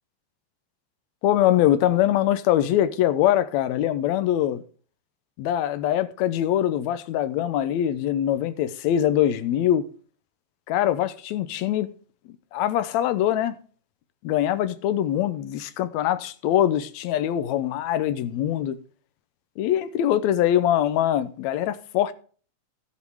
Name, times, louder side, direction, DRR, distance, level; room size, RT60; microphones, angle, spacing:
voice 1, 1.2-4.6 5.4-9.9 10.7-11.9 12.5-13.6 14.2-18.8 19.6-22.1, left 11 dB, 80° left, 1.8 m, -23 dB
15.0 x 5.2 x 4.8 m
omnidirectional pair, 3.5 m